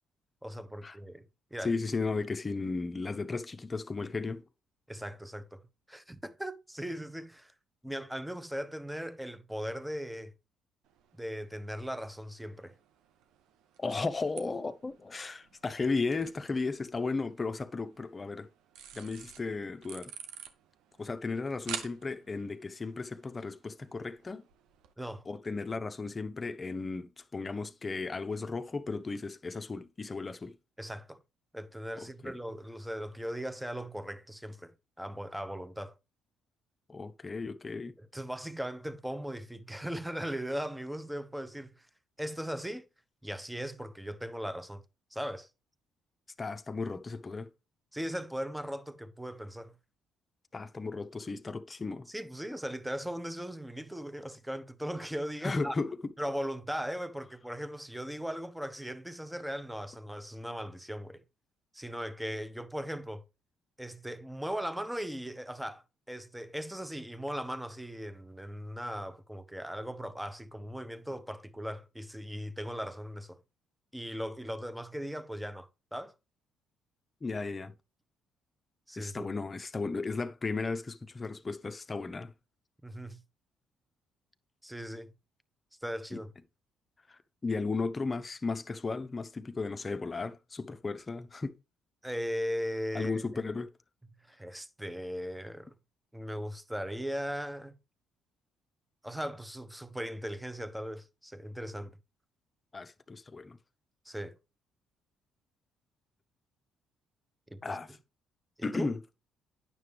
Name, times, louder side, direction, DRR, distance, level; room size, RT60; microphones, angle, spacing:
voice 1, 0.4-1.2 1.5-1.7 4.9-5.6 5.9-7.5 7.8-10.3 11.2-12.7 25.0-25.2 30.8-31.2 31.5-35.9 38.0-41.9 42.2-42.8 43.2-44.8 45.1-45.5 47.9-49.7 52.1-55.7 56.2-61.2 61.7-63.2 63.8-73.4 73.9-76.1 78.9-79.3 82.8-83.2 84.6-85.1 85.8-86.3 92.0-93.2 94.3-95.7 96.1-97.8 99.0-101.9 104.0-104.4 107.5-107.8 108.6-109.0, equal, 5° right, 0.9 m, -38 dB
voice 2, 1.6-4.4 13.8-18.5 18.9-20.1 21.0-24.4 25.3-30.5 32.0-32.3 36.9-37.9 46.4-47.5 50.5-52.1 55.4-55.9 77.2-77.7 79.0-82.3 86.1-86.2 87.1-91.5 92.9-93.7 102.7-103.6 107.6-108.0 108.6-109.0, left 3 dB, 30° left, 0.7 m, -35 dB
sound 1, 10.8-24.9, right 9 dB, 80° right, 0.9 m, -50 dB
9.3 x 6.7 x 3.4 m
supercardioid pair, 75°, 0 cm